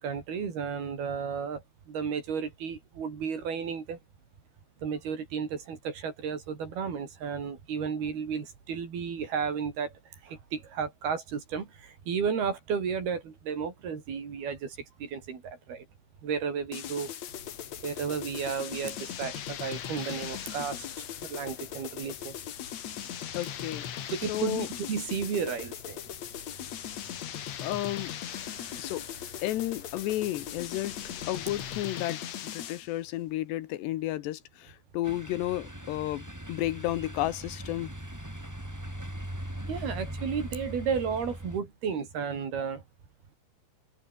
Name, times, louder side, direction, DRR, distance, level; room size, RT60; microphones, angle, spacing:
voice 1, 0.0-1.6 1.9-4.0 4.8-9.9 10.2-15.8 16.2-17.1 17.8-20.9 21.2-22.3 24.1-26.0 39.6-42.8, right 6 dB, 60° right, 6.0 m, -33 dB
sound 1, 16.7-32.9, left 10 dB, 55° left, 2.1 m, -39 dB
sound 2, 17.3-31.8, left 4 dB, 35° left, 6.0 m, -52 dB
voice 2, 23.3-23.8 24.3-24.7 27.6-28.1 28.8-29.0 29.4-37.9, left 15 dB, 80° left, 3.2 m, -32 dB
sound 3, 35.0-41.6, equal, 5° right, 4.9 m, -40 dB
omnidirectional pair, 5.0 m